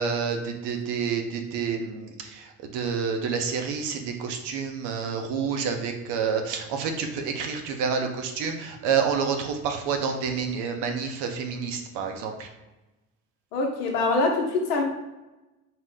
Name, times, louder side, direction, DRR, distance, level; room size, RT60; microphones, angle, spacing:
voice 1, 0.0-12.5, right 6 dB, 65° right, 4 dB, 0.8 m, -28 dB
voice 2, 13.5-14.8, left 3 dB, 85° left, 2 dB, 0.8 m, -24 dB
4.2 x 2.0 x 3.7 m, 1.0 s
hypercardioid pair, 60°, 45 cm